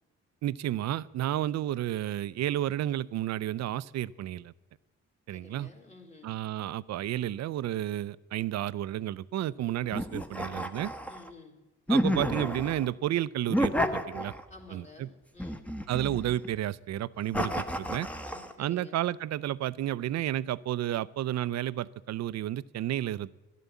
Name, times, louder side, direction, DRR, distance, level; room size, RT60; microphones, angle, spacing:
voice 1, 0.4-4.5 5.3-5.7 6.2-10.9 11.9-14.3 14.7-15.1 15.9-18.1 18.6-23.4, right 13 dB, 65° right, 19 dB, 0.5 m, -31 dB
voice 2, 5.3-6.3 11.1-11.6 14.5-15.6 18.2-19.0, left 3 dB, 25° left, 2 dB, 3.0 m, -52 dB
sound 1, 9.9-11.3 11.9-12.9 13.5-14.6 15.4-16.5 17.3-18.5, equal, 5° left, 1.1 m, -31 dB
13.0 x 11.0 x 8.2 m, 1.1 s
cardioid pair, 90°, 30 cm